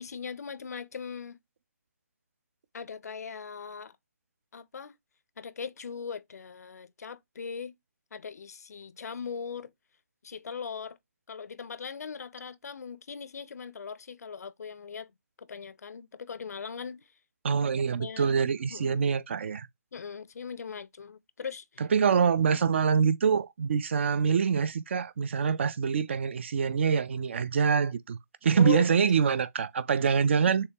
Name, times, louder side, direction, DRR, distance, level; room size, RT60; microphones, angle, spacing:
voice 1, 0.0-1.4 2.7-3.9 4.5-4.9 5.4-7.7 8.1-9.7 10.2-11.0 11.3-15.1 15.4-17.0 18.0-18.3 18.7-19.1 19.9-21.8 28.5-29.1, left 6 dB, 65° left, 0.5 m, -39 dB
voice 2, 17.4-19.7 21.8-30.7, right 6 dB, 40° right, 0.4 m, -25 dB
6.6 x 2.2 x 2.8 m
hypercardioid pair, 155°, 9 cm